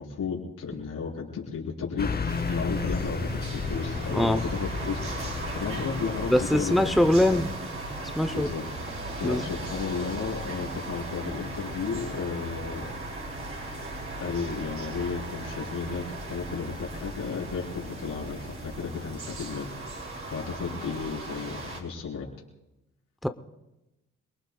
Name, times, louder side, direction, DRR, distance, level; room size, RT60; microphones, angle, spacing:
voice 1, 0.0-7.4 8.3-8.6 9.2-12.9 14.2-19.7 20.3-22.3, left 5 dB, 85° left, -3 dB, 4.3 m, -34 dB
Car passing by / Truck, 2.0-7.5, left 4 dB, 30° left, 0.9 m, -33 dB
sound 1, 2.3-21.8, right 2 dB, 45° right, 4.9 m, -37 dB
voice 2, 4.1-4.4 6.3-7.5 8.1-8.5 9.2-9.4 23.2-23.3, left 1 dB, ahead, 8 dB, 0.8 m, -22 dB
27.0 x 19.5 x 2.4 m, 0.95 s
cardioid pair, 65°, 31 cm